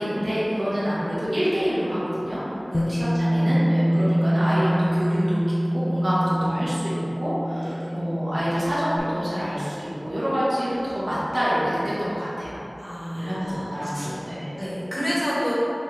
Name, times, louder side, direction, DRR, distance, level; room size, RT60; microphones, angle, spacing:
voice 1, 0.0-2.4 2.8-5.4 5.7-12.6 13.1-14.6, equal, 65° right, -11 dB, 1.3 m, -27 dB
Bass guitar, 2.7-9.0, equal, 40° left, 0.3 m, -24 dB
voice 2, 12.8-14.2 14.6-15.5, equal, 15° left, -9 dB, 1.4 m, -30 dB
6.3 x 2.4 x 3.2 m, 3.0 s
wide cardioid pair, 50°, 0 cm